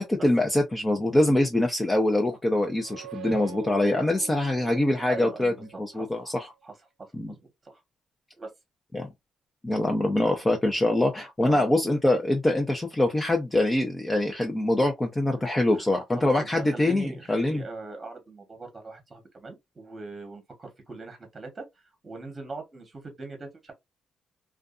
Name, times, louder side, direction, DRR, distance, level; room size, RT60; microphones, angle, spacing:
voice 1, 0.0-6.5 7.1-7.3 8.9-9.1 9.6-17.6, left 1 dB, 15° left, 0.6 m, -24 dB
sound 1, 2.6-6.2, right 11 dB, 80° right, 0.5 m, -44 dB
voice 2, 5.1-7.8 8.4-8.5 10.2-10.3 11.4-11.7 15.8-15.9 16.1-21.6 22.0-23.7, right 3 dB, 25° right, 1.0 m, -41 dB
2.5 x 2.3 x 2.4 m
cardioid pair, 90°, 0 cm